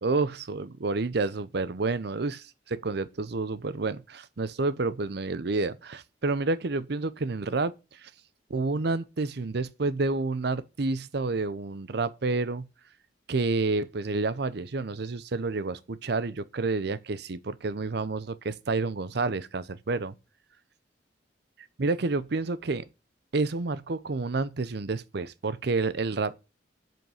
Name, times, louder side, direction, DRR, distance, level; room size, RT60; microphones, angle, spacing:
voice 1, 0.0-7.7 8.0-8.1 8.5-12.7 13.3-20.1 21.8-22.8 23.3-26.3, right 3 dB, 65° right, 0.7 m, -29 dB
7.8 x 7.7 x 4.9 m
head